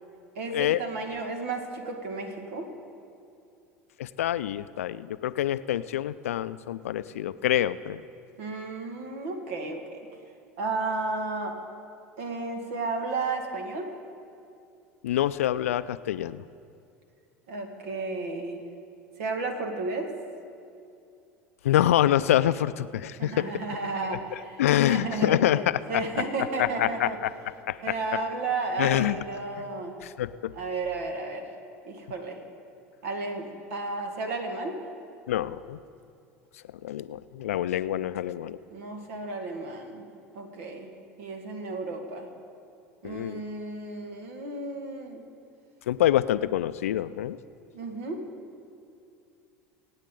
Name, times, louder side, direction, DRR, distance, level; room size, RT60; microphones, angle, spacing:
voice 1, 0.4-2.7 8.4-10.1 10.6-11.6 12.2-13.9 17.5-18.6 19.2-20.1 23.2-25.4 25.9-27.2 27.8-30.0 30.5-31.4 31.9-32.4 33.0-34.8 38.7-40.0 40.3-40.9 41.2-42.3 43.0-45.2 47.7-48.2, right 3 dB, 70° right, 5 dB, 1.9 m, -33 dB
voice 2, 4.0-8.0 15.0-16.4 21.6-23.5 24.6-25.6 25.9-26.0 26.6-27.3 27.7-27.9 28.8-29.2 30.0-30.5 35.3-35.8 36.8-38.6 43.0-43.4 45.9-47.4, left 12 dB, 80° left, 15 dB, 0.4 m, -26 dB
25.0 x 8.9 x 3.9 m, 2.5 s
hypercardioid pair, 75°, 8 cm